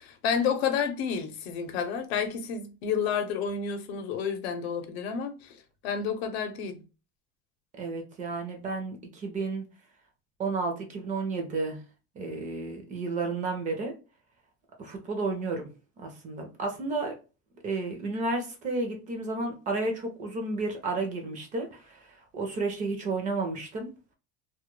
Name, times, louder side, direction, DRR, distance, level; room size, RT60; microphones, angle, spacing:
voice 1, 0.0-6.8, left 6 dB, 80° left, 0.7 m, -30 dB
voice 2, 7.8-9.7 10.4-11.8 12.2-13.9 14.8-15.7 16.0-17.1 17.6-23.9, right 3 dB, 25° right, 0.4 m, -32 dB
2.3 x 2.1 x 3.0 m
supercardioid pair, 155°, 31 cm